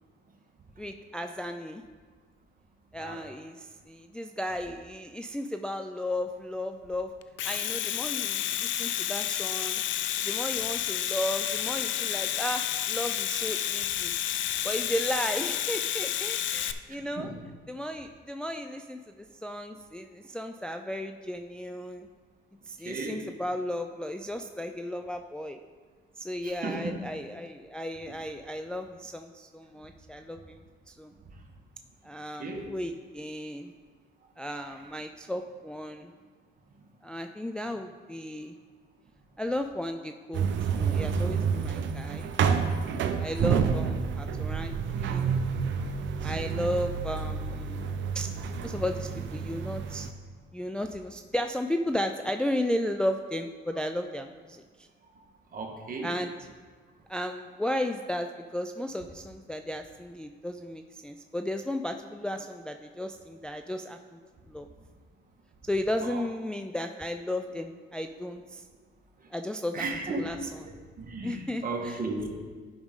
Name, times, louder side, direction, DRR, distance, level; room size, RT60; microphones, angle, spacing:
voice 1, 0.8-1.8 2.9-7.1 7.4-9.8 10.2-14.1 14.6-17.3 17.7-22.1 22.7-25.6 26.2-31.1 32.0-33.7 34.4-36.1 37.0-38.5 39.4-40.5 40.7-42.3 43.2-45.4 46.2-48.3 48.6-50.1 50.5-54.9 56.0-56.3 57.1-64.2 64.5-64.7 65.7-68.6 69.3-69.9 70.2-70.7 71.2-72.0, left 1 dB, 5° left, 5 dB, 0.3 m, -34 dB
Domestic sounds home sounds, 7.2-16.7, left 11 dB, 70° left, 0.4 m, -30 dB
voice 2, 16.9-17.3 22.8-23.2 26.4-27.0 32.4-32.7 55.5-56.1 66.0-66.2 69.7-70.3 70.6-72.3, right 3 dB, 45° right, 1 dB, 1.4 m, -35 dB
sound 1, 40.3-50.1, right 6 dB, 70° right, 0.6 m, -29 dB
11.5 x 5.1 x 3.7 m, 1.5 s
cardioid pair, 90°, 20 cm